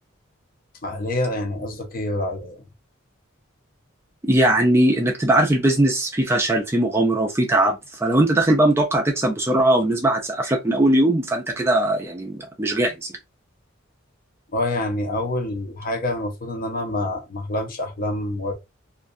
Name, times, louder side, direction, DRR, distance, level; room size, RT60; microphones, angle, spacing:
voice 1, 0.8-2.6 14.5-18.5, left 1 dB, 45° left, 0.6 m, -27 dB
voice 2, 4.2-13.1, right 1 dB, 10° right, 0.4 m, -20 dB
2.5 x 2.2 x 2.5 m
head